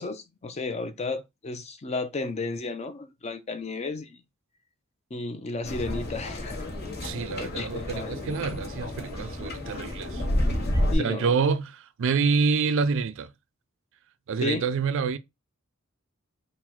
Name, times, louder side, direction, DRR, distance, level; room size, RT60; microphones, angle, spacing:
voice 1, 0.0-4.2 5.1-6.7 7.4-8.2 10.9-11.4 14.4-14.7, left 3 dB, 30° left, 0.5 m, -33 dB
sound 1, 5.6-11.0, left 1 dB, 50° left, 1.1 m, -30 dB
voice 2, 7.0-10.3 11.0-13.3 14.3-15.2, right 5 dB, 65° right, 0.4 m, -27 dB
3.8 x 2.1 x 4.4 m
head